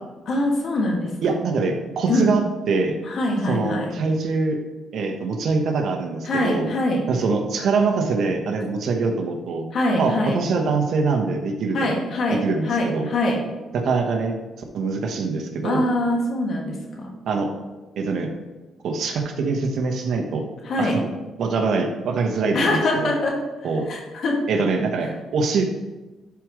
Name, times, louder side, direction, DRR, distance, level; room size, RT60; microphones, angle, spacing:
voice 1, 0.3-1.4 2.1-2.3 3.0-3.9 6.2-7.1 9.7-10.4 11.7-13.4 15.6-17.1 20.6-21.0 22.5-23.4 23.9-24.4, left 1 dB, 60° left, -1 dB, 2.1 m, -23 dB
voice 2, 1.2-3.0 3.5-4.6 4.9-6.7 7.1-9.6 10.0-12.0 12.3-13.1 13.7-14.4 14.7-15.8 17.3-17.5 18.0-18.3 18.8-20.5 20.8-21.0 21.4-23.1 23.6-23.9 24.5-25.6, right 4 dB, 70° right, 3 dB, 1.2 m, -24 dB
12.0 x 4.9 x 3.2 m, 1.2 s
cardioid pair, 90°, 0 cm